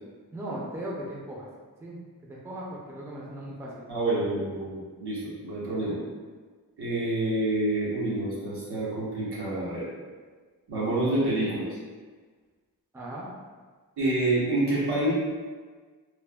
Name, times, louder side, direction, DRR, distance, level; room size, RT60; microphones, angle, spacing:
voice 1, 0.3-1.5 1.8-3.8 12.9-13.3, right 1 dB, 5° right, -4 dB, 0.4 m, -38 dB
voice 2, 3.9-6.0 6.8-9.9 10.7-11.7 14.0-15.1, right 2 dB, 85° right, -8 dB, 1.0 m, -27 dB
3.2 x 2.1 x 2.2 m, 1.5 s
wide cardioid pair, 105°, 38 cm